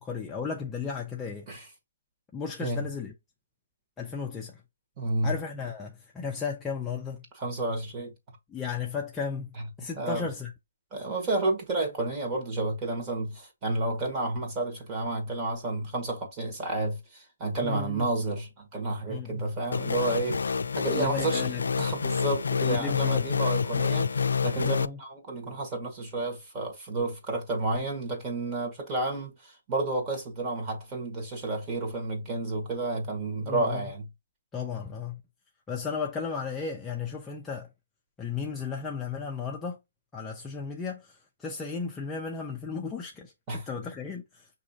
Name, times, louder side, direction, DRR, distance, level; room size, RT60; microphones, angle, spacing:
voice 1, 0.0-1.5 2.3-3.1 4.0-4.6 5.2-7.2 8.5-10.5 17.6-18.1 19.1-19.4 20.9-21.6 22.6-23.3 24.6-25.0 33.4-33.9 34.5-35.2 35.7-37.7 38.2-39.8 40.1-44.5, left 5 dB, 10° left, 0.5 m, -35 dB
voice 2, 5.0-5.3 7.4-8.1 10.0-10.3 10.9-21.5 21.8-34.1 43.5-43.6, right 2 dB, 20° right, 1.5 m, -31 dB
sound 1, 19.7-24.9, left 6 dB, 85° left, 0.3 m, -28 dB
6.3 x 3.0 x 2.7 m
hypercardioid pair, 160°, 0 cm